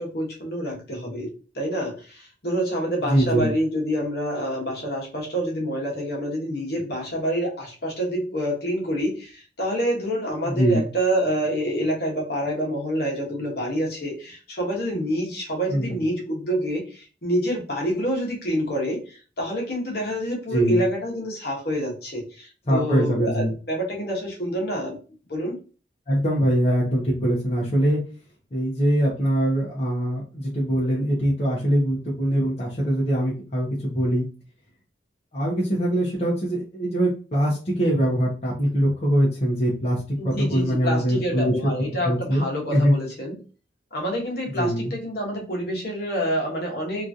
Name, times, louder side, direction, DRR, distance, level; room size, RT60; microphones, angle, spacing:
voice 1, 0.0-25.0 25.3-25.6 40.2-43.4 43.9-47.1, equal, 55° left, -1 dB, 1.1 m, -27 dB
voice 2, 3.1-3.5 10.4-10.8 15.7-16.0 20.5-20.8 22.7-23.5 26.1-28.0 28.5-34.2 35.3-41.7 42.0-42.4 42.7-42.9 44.6-44.9, right 1 dB, 35° left, -5 dB, 0.7 m, -22 dB
2.9 x 2.4 x 2.6 m, 0.36 s
head